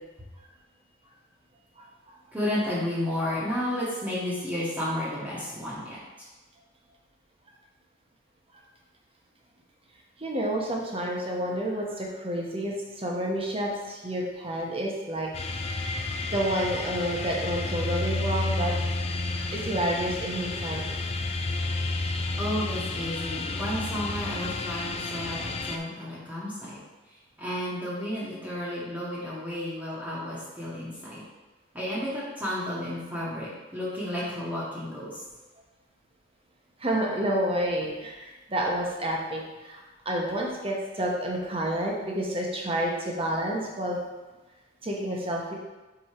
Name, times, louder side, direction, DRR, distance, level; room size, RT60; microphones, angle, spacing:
voice 1, 2.3-6.3 22.4-26.8 27.4-31.2 31.7-35.2, left 1 dB, 10° right, -9 dB, 1.2 m, -32 dB
voice 2, 10.2-15.3 16.3-18.7 19.5-20.8 36.8-44.0 44.8-45.5, right 1 dB, 30° right, -1 dB, 1.0 m, -29 dB
sound 1, 15.3-25.8, left 3 dB, 30° left, 0.4 m, -31 dB
4.9 x 4.3 x 4.5 m, 1.2 s
head